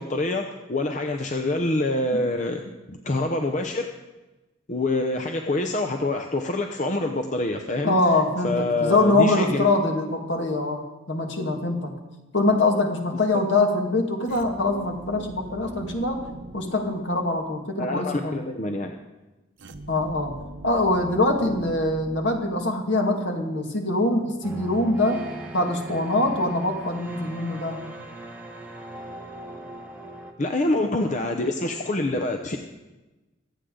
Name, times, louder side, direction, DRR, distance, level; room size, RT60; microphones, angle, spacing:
voice 1, 0.0-3.9 4.7-7.9 8.4-9.6 17.8-18.9 30.4-32.6, left 2 dB, 40° left, 4 dB, 0.7 m, -26 dB
voice 2, 7.8-10.8 11.1-11.9 12.3-18.4 19.9-20.3 20.6-27.8, left 2 dB, 65° left, 3 dB, 1.9 m, -23 dB
sound 1, 14.2-17.6 19.6-22.9, right 1 dB, 70° right, 1.0 m, -42 dB
sound 2, 24.4-30.3, right 1 dB, 10° right, 1.0 m, -39 dB
24.5 x 8.4 x 3.8 m, 1.1 s
head